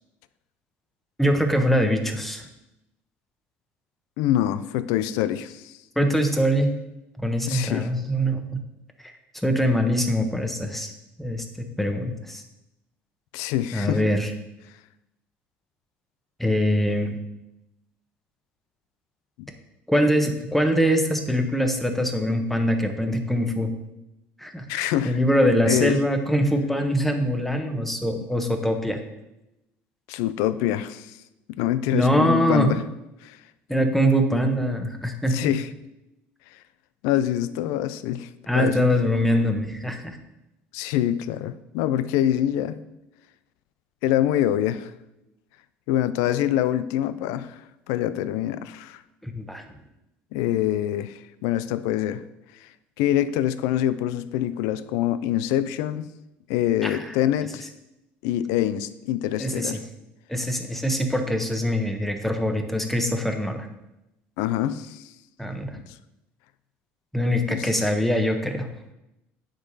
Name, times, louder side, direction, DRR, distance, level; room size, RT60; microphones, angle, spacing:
voice 1, 1.2-2.5 6.0-6.7 7.2-8.6 9.0-12.4 13.7-14.3 16.4-17.1 19.9-23.7 24.4-29.0 31.9-32.7 33.7-35.5 38.5-40.2 49.2-49.6 56.8-57.1 59.4-59.8 60.3-63.7 65.4-65.8 67.1-68.7, equal, 5° left, 5 dB, 1.1 m, -23 dB
voice 2, 4.2-5.8 7.5-7.9 13.3-14.0 19.4-19.5 24.7-25.2 25.7-26.0 30.1-31.2 31.5-32.8 33.2-33.4 35.3-35.7 37.0-38.3 38.5-38.9 40.7-42.8 44.0-44.9 45.9-47.6 47.9-49.0 50.3-52.2 52.6-52.7 53.0-56.1 56.5-57.7 58.2-59.8 64.4-65.0 67.5-67.7, left 12 dB, 75° left, 14 dB, 0.4 m, -25 dB
9.6 x 3.8 x 4.1 m, 0.91 s
supercardioid pair, 75°, 6 cm